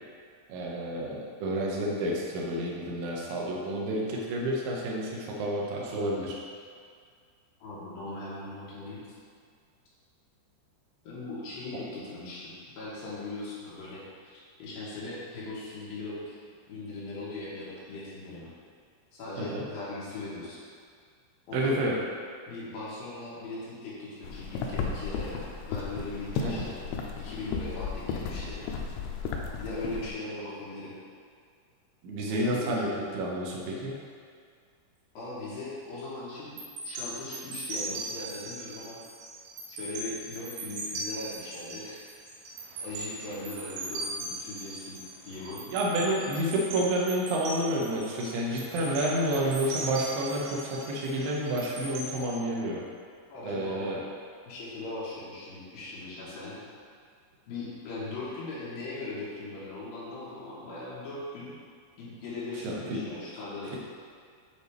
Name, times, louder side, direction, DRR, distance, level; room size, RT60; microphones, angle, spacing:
voice 1, 0.5-6.4 19.4-19.7 21.5-22.0 26.3-26.7 32.0-34.0 45.7-52.8 53.4-54.0 62.6-63.1, right 1 dB, 75° right, -3 dB, 2.2 m, -30 dB
voice 2, 7.6-9.0 11.0-16.4 16.7-18.5 19.1-20.6 21.5-21.9 22.5-25.4 25.7-26.8 27.1-28.6 29.6-31.0 32.3-32.8 35.1-36.6 36.8-39.0 39.7-42.0 42.8-45.6 53.3-54.0 54.5-56.6 57.5-61.6 62.0-63.8, left 2 dB, 65° left, -8 dB, 2.7 m, -39 dB
sound 1, 24.2-30.1, left 5 dB, 85° left, 2.3 m, -34 dB
sound 2, 36.6-52.2, right 2 dB, 90° right, 1.8 m, -39 dB
8.6 x 3.9 x 3.4 m, 2.1 s
omnidirectional pair, 5.1 m